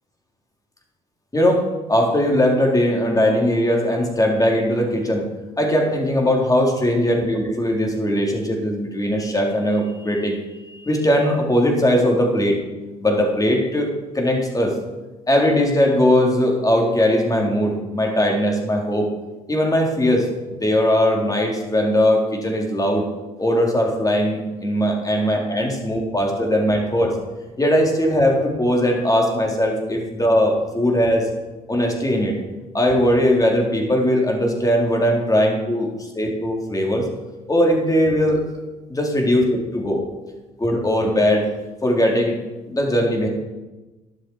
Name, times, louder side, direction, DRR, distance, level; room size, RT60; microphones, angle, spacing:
voice 1, 1.3-1.6 1.9-5.2 5.6-12.6 13.0-13.9 14.1-14.8 15.3-19.1 19.5-23.0 23.4-27.2 27.6-31.3 31.7-32.4 32.7-37.1 37.5-38.4 38.9-40.0 40.6-41.5 41.8-42.4 42.7-43.3, equal, 20° left, 0 dB, 3.9 m, -19 dB
13.5 x 11.5 x 4.9 m, 1.1 s
hypercardioid pair, 50°, 19 cm